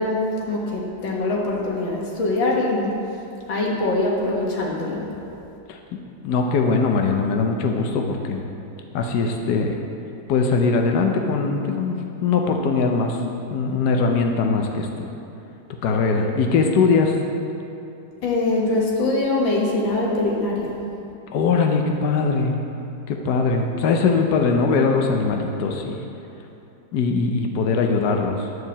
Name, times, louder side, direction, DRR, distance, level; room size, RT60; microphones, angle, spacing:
voice 1, 0.0-2.9 3.5-5.0 18.2-20.8, left 2 dB, 90° left, -2 dB, 2.2 m, -23 dB
voice 2, 5.7-6.0 6.2-8.4 8.9-9.7 10.3-11.9 12.2-13.2 13.5-14.9 15.8-17.2 21.3-22.6 23.1-26.0 26.9-28.5, left 4 dB, 65° left, 3 dB, 1.2 m, -21 dB
11.0 x 4.8 x 7.1 m, 2.9 s
omnidirectional pair, 2.0 m